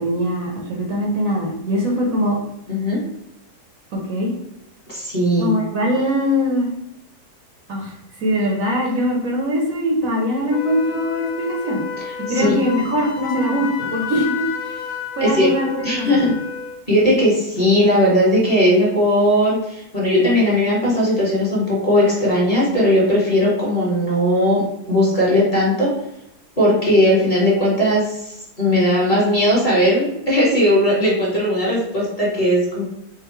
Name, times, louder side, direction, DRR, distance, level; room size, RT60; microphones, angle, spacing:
voice 1, 0.0-2.4 3.9-4.3 5.4-6.7 7.7-11.8 12.3-14.8 15.2-16.2, equal, 65° right, -1 dB, 1.1 m, -22 dB
voice 2, 2.7-3.0 4.9-5.5 12.3-12.6 15.2-15.5 15.8-16.3 16.9-24.6 24.9-25.9 26.6-32.8, equal, 25° left, -6 dB, 1.2 m, -18 dB
Wind instrument woodwind instrument, 10.5-16.8, left 7 dB, 85° left, 1.2 m, -31 dB
3.7 x 2.0 x 4.4 m, 0.83 s
omnidirectional pair, 1.7 m